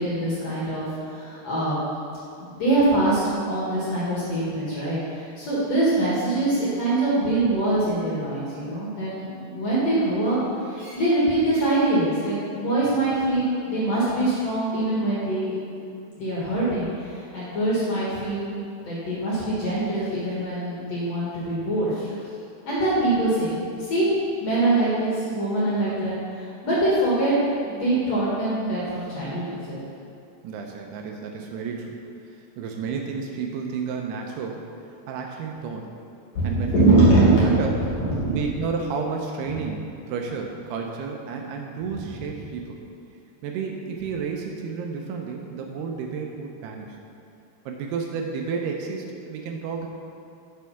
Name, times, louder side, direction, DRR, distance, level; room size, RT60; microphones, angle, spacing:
voice 1, 0.0-1.8 2.4-3.2 3.5-15.6 16.1-18.6 18.9-22.2 22.7-24.1 24.4-27.4 27.6-29.8 36.3-37.6 37.9-38.3, right 2 dB, 50° left, -8 dB, 2.2 m, -23 dB
voice 2, 30.4-32.0 32.6-34.6 35.1-35.9 36.4-37.8 38.3-42.8 43.4-47.0 47.7-49.9, right 5 dB, 80° right, 2 dB, 2.6 m, -31 dB
8.1 x 6.3 x 5.7 m, 2.6 s
omnidirectional pair, 4.9 m